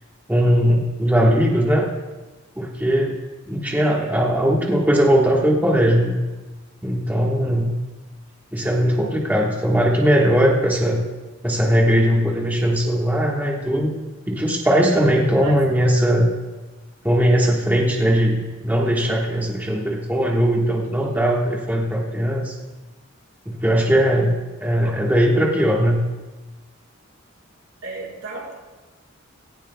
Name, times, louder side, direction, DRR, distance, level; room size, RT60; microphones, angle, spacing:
voice 1, 0.3-1.9 2.6-3.1 3.5-6.2 6.8-7.7 8.5-11.0 11.4-13.9 14.3-16.3 17.0-22.6 23.4-24.3 24.6-26.1, equal, 10° right, -3 dB, 1.4 m, -19 dB
voice 2, 8.6-8.9 14.6-14.9 15.4-15.6 27.8-28.7, right 3 dB, 85° right, -4 dB, 4.5 m, -35 dB
17.5 x 16.5 x 2.3 m, 1.2 s
head